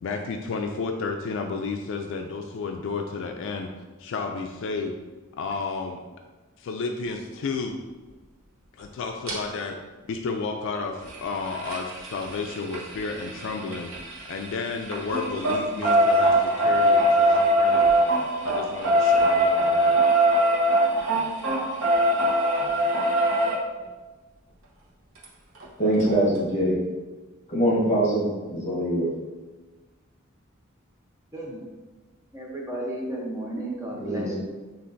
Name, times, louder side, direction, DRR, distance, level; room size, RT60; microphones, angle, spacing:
voice 1, 0.0-3.7 4.0-4.9 5.4-6.0 6.6-7.8 8.8-9.8 10.1-13.9 14.3-18.1 18.4-20.0, left 4 dB, 65° left, 4 dB, 0.3 m, -32 dB
sound 1, 9.3-9.4 11.0-14.5 14.8-23.5 25.2-25.3 25.6-25.7 26.0-26.1, right 1 dB, 90° right, 0.9 m, -22 dB
voice 2, 25.8-26.8 27.5-29.1 33.9-34.4, right 1 dB, 35° left, -4 dB, 1.2 m, -23 dB
voice 3, 32.3-34.4, right 1 dB, 15° right, -3 dB, 0.7 m, -33 dB
6.8 x 2.5 x 2.6 m, 1.2 s
head